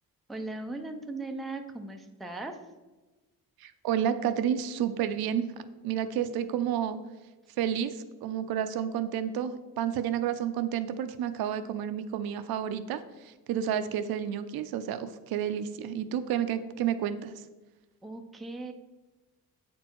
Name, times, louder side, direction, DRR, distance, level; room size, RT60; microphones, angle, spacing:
voice 1, 0.3-2.6 18.0-18.7, right 2 dB, ahead, 4 dB, 0.4 m, -38 dB
voice 2, 3.6-7.0 7.6-17.3, right 9 dB, 70° right, 11 dB, 0.6 m, -30 dB
8.2 x 4.4 x 4.4 m, 1.2 s
cardioid pair, 140°, 37 cm